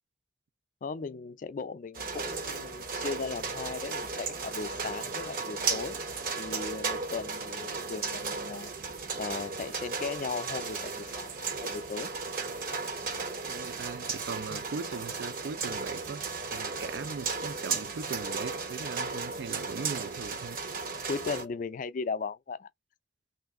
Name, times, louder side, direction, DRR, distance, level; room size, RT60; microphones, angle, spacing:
voice 1, 0.8-6.0 6.4-8.7 9.2-12.1 14.5-14.6 21.1-22.7, left 4 dB, 45° left, 0.4 m, -37 dB
sound 1, 1.9-21.5, right 4 dB, 55° right, 0.9 m, -35 dB
voice 2, 13.5-16.2 16.5-20.6, right 5 dB, 75° right, 0.4 m, -39 dB
3.2 x 2.6 x 3.5 m
head